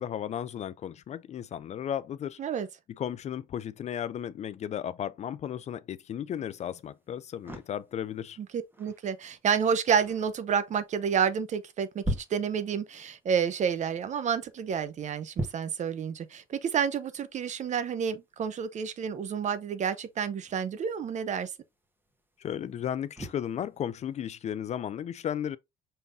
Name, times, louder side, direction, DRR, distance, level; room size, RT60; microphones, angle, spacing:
voice 1, 0.0-2.4 3.0-8.4 22.4-25.6, left 9 dB, 40° left, 0.4 m, -34 dB
sound 1, 6.3-24.3, equal, 10° right, 1.5 m, -44 dB
voice 2, 8.4-21.5, right 7 dB, 45° right, 0.7 m, -29 dB
5.5 x 3.6 x 2.6 m
cardioid pair, 110°, 17 cm